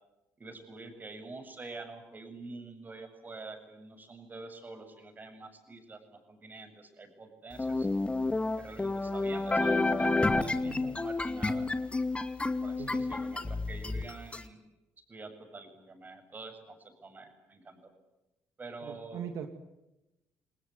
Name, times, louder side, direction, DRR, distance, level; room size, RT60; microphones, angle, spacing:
voice 1, 0.4-7.9 8.6-10.1 10.4-11.7 12.6-14.6 15.1-17.9 18.6-19.3, right 3 dB, 30° right, 7 dB, 7.7 m, -46 dB
sound 1, 7.6-14.4, left 2 dB, 20° left, 2.3 m, -30 dB
voice 2, 10.6-10.9 12.8-13.0 18.8-19.5, right 8 dB, 75° right, 6 dB, 2.3 m, -41 dB
29.0 x 19.5 x 9.6 m, 0.99 s
supercardioid pair, 80°, 6 cm